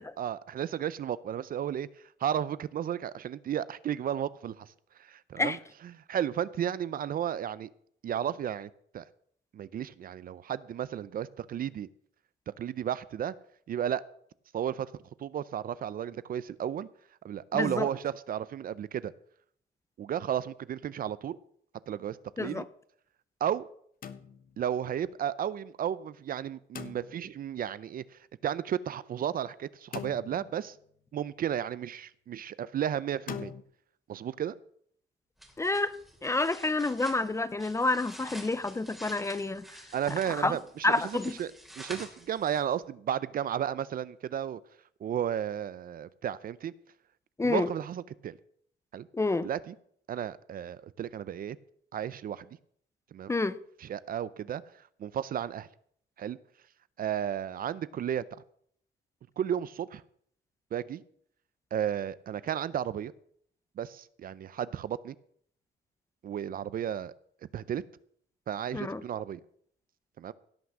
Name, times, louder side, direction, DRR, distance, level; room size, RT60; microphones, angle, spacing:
voice 1, 0.2-1.9 2.2-4.7 5.0-5.6 5.9-7.7 8.0-9.0 9.5-11.9 12.6-13.3 13.7-14.0 14.5-14.9 15.2-16.9 17.2-19.1 20.0-21.4 21.9-22.6 23.4-23.7 24.6-30.8 31.1-33.5 34.1-34.5 39.9-41.5 41.8-44.6 45.0-46.7 47.4-48.4 48.9-49.1 49.4-49.7 50.1-51.6 51.9-52.5 53.1-53.3 53.8-54.6 55.0-55.7 56.2-56.4 57.0-58.2 59.4-60.0 60.7-61.0 61.7-63.1 63.8-65.1 66.2-67.1 67.5-67.8 68.5-69.4 70.2-70.3, right 9 dB, 45° right, 0.5 m, -33 dB
voice 2, 17.5-17.9 22.4-22.6 35.6-35.9 36.2-39.6 40.3-40.6 40.8-41.3 47.4-47.7 49.1-49.5 53.3-53.6 68.7-69.0, left 2 dB, 15° left, 0.5 m, -28 dB
sound 1, 24.0-24.8 26.7-27.5 29.9-30.8 33.3-33.6, left 7 dB, 45° left, 1.0 m, -42 dB
sound 2, 35.4-42.8, equal, ahead, 2.8 m, -49 dB
17.0 x 6.0 x 7.3 m
cardioid pair, 160°, 20 cm